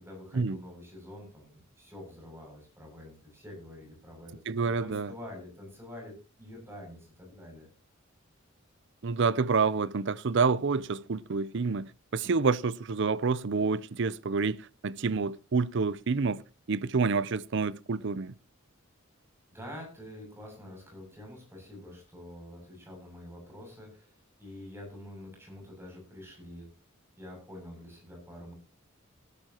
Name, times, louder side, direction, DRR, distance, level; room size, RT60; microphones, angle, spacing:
voice 1, 0.0-7.7 19.5-26.7 27.2-28.5, left 1 dB, 10° right, 7.3 m, -47 dB
voice 2, 4.5-5.1 9.0-14.6 14.8-16.4 16.7-18.3, right 4 dB, 60° right, 0.6 m, -28 dB
18.5 x 12.5 x 3.0 m
head